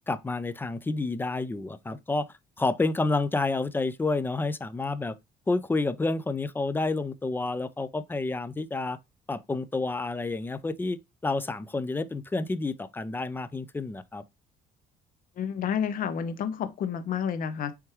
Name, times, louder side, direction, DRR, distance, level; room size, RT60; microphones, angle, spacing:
voice 1, 0.1-2.3 2.6-5.1 5.5-9.0 9.3-14.2, left 3 dB, 10° left, 0.3 m, -29 dB
voice 2, 15.4-17.7, left 8 dB, 55° left, 0.7 m, -30 dB
4.5 x 3.5 x 3.0 m
cardioid pair, 110°, 17 cm